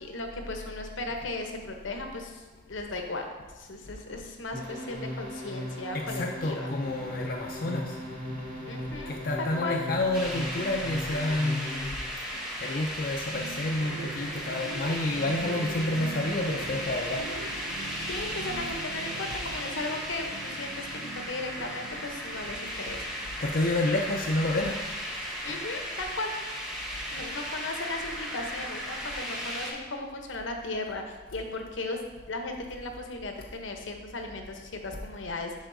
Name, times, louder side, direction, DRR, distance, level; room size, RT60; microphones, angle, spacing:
voice 1, 0.0-3.3 3.5-6.7 8.7-9.8 15.4-16.2 18.1-23.0 25.4-26.3 27.1-32.0 32.3-35.7, left 2 dB, 75° left, 3 dB, 0.8 m, -36 dB
sound 1, 4.5-12.1, left 1 dB, 40° right, 1.5 m, -38 dB
voice 2, 5.9-8.0 9.1-12.0 12.3-17.2 23.4-24.8, left 2 dB, 45° left, 0 dB, 0.4 m, -29 dB
sound 2, 6.8-12.4 12.7-23.7, right 4 dB, 80° right, 0.4 m, -44 dB
sound 3, 10.1-29.7, equal, 5° right, 1.0 m, -36 dB
10.5 x 4.4 x 2.6 m, 1.2 s
head